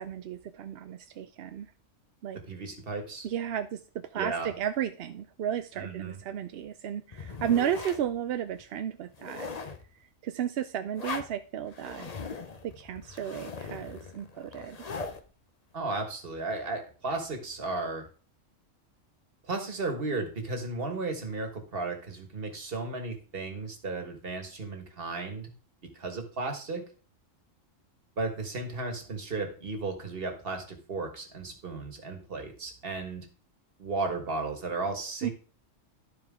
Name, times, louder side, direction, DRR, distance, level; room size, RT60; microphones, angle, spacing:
voice 1, 0.0-1.7 2.2-2.4 3.2-9.5 10.2-12.1 12.6-14.9 35.2-35.3, right 9 dB, 65° right, 9 dB, 0.7 m, -33 dB
voice 2, 2.3-3.3 4.1-4.5 5.8-6.2 15.7-18.1 19.4-25.5 25.9-26.9 28.2-33.3 33.8-35.3, right 3 dB, 45° right, 5 dB, 1.7 m, -34 dB
sound 1, 7.1-8.1 8.6-8.7 9.1-9.9 11.0-11.3 11.7-15.2, left 4 dB, 35° left, 0.8 m, -39 dB
13.0 x 4.6 x 3.6 m, 0.38 s
omnidirectional pair, 1.3 m